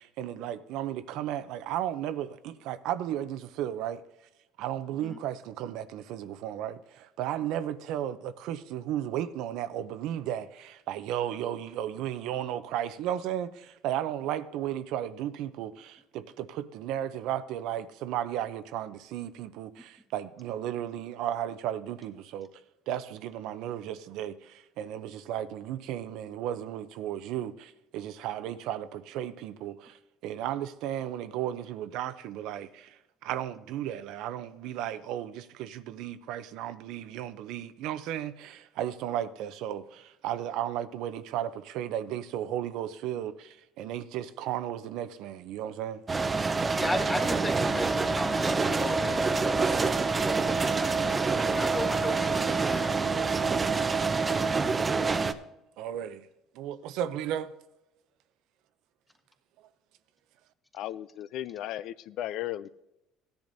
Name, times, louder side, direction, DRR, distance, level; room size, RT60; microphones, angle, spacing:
voice 1, 0.0-4.0 4.6-22.5 22.9-46.0 55.8-56.3 56.5-57.5, right 11 dB, 70° right, 0.6 m, -34 dB
sound 1, 46.1-55.3, right 4 dB, 20° right, 0.5 m, -26 dB
voice 2, 46.7-51.2 51.5-53.3, left 1 dB, 10° left, 1.3 m, -36 dB
voice 3, 60.7-62.7, left 13 dB, 65° left, 0.3 m, -35 dB
17.0 x 10.5 x 2.7 m
cardioid pair, 125°, 0 cm